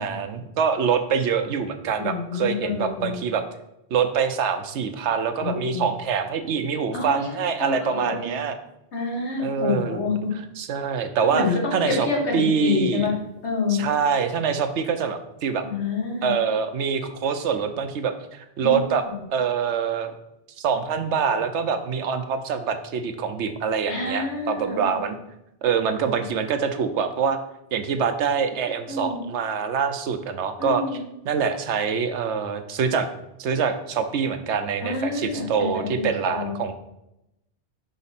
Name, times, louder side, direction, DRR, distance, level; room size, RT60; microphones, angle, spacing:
voice 1, 0.0-3.4 3.9-8.6 9.4-10.0 10.3-12.1 12.3-13.1 13.7-15.7 16.2-19.0 19.3-20.1 20.6-25.2 25.6-27.4 27.7-31.0 31.2-33.1 33.4-36.7, right 6 dB, 80° right, 8 dB, 1.0 m, -25 dB
voice 2, 2.0-3.2 5.4-5.8 6.9-8.4 8.9-10.3 11.3-13.1 13.4-13.8 15.6-16.3 18.6-18.7 19.0-19.2 23.9-24.8 28.9-29.2 30.6-31.0 34.8-36.6, left 4 dB, 75° left, -2 dB, 2.0 m, -27 dB
5.9 x 5.2 x 4.1 m, 0.86 s
omnidirectional pair, 1.2 m